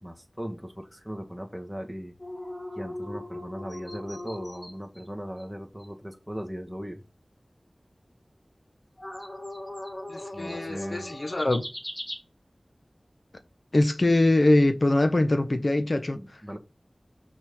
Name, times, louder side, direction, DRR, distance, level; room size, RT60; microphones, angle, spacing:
voice 1, 0.0-2.1 2.7-7.0 10.3-11.1 16.1-16.6, equal, ahead, 1.9 m, -38 dB
sound 1, 2.2-5.1 5.4-5.5 5.8-5.9 9.0-12.2, left 1 dB, 25° left, 2.7 m, -39 dB
voice 2, 10.1-11.7 13.7-16.6, left 2 dB, 55° left, 1.2 m, -23 dB
6.1 x 4.2 x 5.6 m
wide cardioid pair, 55°, 0 cm